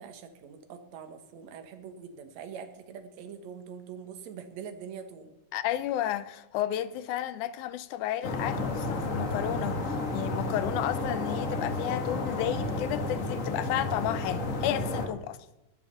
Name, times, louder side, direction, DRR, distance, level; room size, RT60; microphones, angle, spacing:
voice 1, 0.0-5.4, right 7 dB, 65° right, 2.3 m, -44 dB
voice 2, 5.5-15.4, left 12 dB, 80° left, 1.9 m, -32 dB
sound 1, 8.2-15.1, left 2 dB, 55° left, 0.8 m, -31 dB
19.5 x 7.0 x 5.6 m
omnidirectional pair, 3.8 m